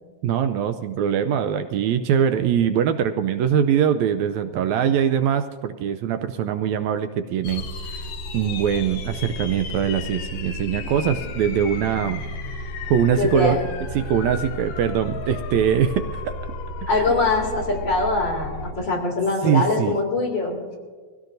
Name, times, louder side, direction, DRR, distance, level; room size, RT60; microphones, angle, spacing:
voice 1, 0.2-8.1 8.3-12.2 12.9-13.6 13.9-16.3 16.9-17.0 19.4-19.9, right 8 dB, 80° right, 9 dB, 1.8 m, -22 dB
sound 1, 7.4-18.7, left 2 dB, 75° left, 2.2 m, -33 dB
voice 2, 13.1-13.6 16.9-20.7, left 3 dB, 40° left, -2 dB, 3.0 m, -23 dB
23.0 x 16.0 x 2.6 m, 1.5 s
omnidirectional pair, 3.4 m